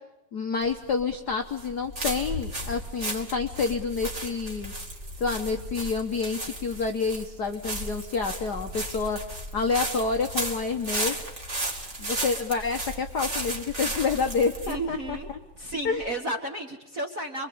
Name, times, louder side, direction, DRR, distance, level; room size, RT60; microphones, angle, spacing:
voice 1, 0.3-4.7 5.2-9.2 9.5-11.2 12.0-15.4 15.8-16.2, left 5 dB, 60° left, 5 dB, 1.0 m, -28 dB
sound 1, 0.6-16.1, right 1 dB, 25° right, 2.5 m, -35 dB
voice 2, 14.7-15.3 15.6-17.5, right 1 dB, 40° right, 4 dB, 1.3 m, -32 dB
26.0 x 23.5 x 8.5 m, 0.98 s
omnidirectional pair, 3.5 m